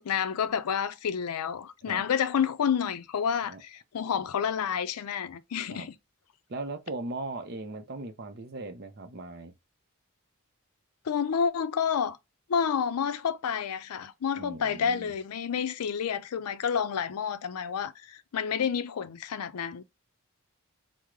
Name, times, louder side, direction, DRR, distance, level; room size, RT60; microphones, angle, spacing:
voice 1, 0.0-6.0 11.0-12.2 12.5-19.8, left 7 dB, 90° left, 0.4 m, -29 dB
voice 2, 6.5-9.5 14.3-15.1, right 2 dB, 45° right, 0.6 m, -38 dB
3.6 x 2.0 x 3.0 m
head